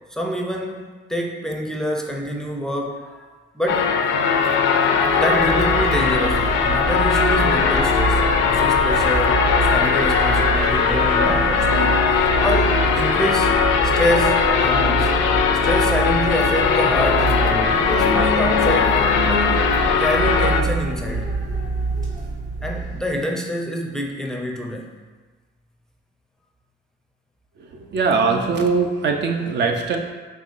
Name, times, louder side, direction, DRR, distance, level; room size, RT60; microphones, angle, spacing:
voice 1, 0.1-3.3 3.5-3.9 5.1-15.1 15.6-19.0 19.3-19.6 20.0-21.4 22.6-24.9, equal, 5° left, 1 dB, 0.5 m, -26 dB
sound 1, 3.7-20.6, left 6 dB, 80° left, 0.4 m, -19 dB
sound 2, 5.0-23.2, right 3 dB, 40° right, 1.1 m, -26 dB
sound 3, 9.5-15.4, equal, 90° right, 1.0 m, -35 dB
voice 2, 27.6-30.0, right 4 dB, 60° right, 3 dB, 0.5 m, -21 dB
5.4 x 3.2 x 2.5 m, 1.4 s
cardioid pair, 90°, 20 cm